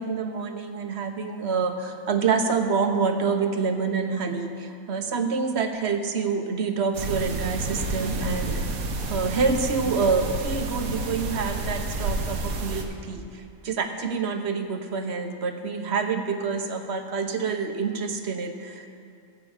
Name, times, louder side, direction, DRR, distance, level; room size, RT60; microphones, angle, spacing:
voice 1, 0.0-18.9, right 5 dB, 55° right, 6 dB, 0.9 m, -27 dB
sound 1, 6.9-12.8, right 2 dB, 75° right, 1.4 m, -30 dB
14.0 x 8.3 x 4.9 m, 2.5 s
omnidirectional pair, 1.5 m